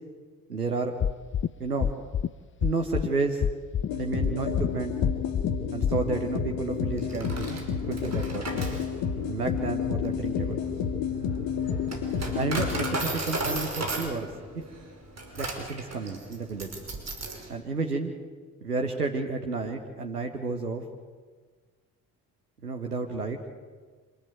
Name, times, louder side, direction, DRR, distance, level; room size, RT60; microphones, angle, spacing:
voice 1, 0.5-1.0 1.6-1.9 2.6-3.4 3.9-4.9 5.7-8.6 9.2-10.6 12.3-14.3 14.5-14.6 15.3-16.8 17.5-18.1 18.6-20.8 22.6-23.4, right 3 dB, 90° right, 4 dB, 1.2 m, -31 dB
sound 1, 1.0-1.5 1.8-2.3 2.6-3.1 3.4-3.9 4.2-4.7 5.0-5.5 5.8-5.9, left 9 dB, 25° left, 0.6 m, -26 dB
sound 2, 3.9-13.4, left 6 dB, 60° left, 2.4 m, -30 dB
Coin (dropping), 7.0-17.5, right 2 dB, 35° right, 5.5 m, -35 dB
26.0 x 13.5 x 9.2 m, 1.5 s
figure-of-eight pair, 45°, 45 cm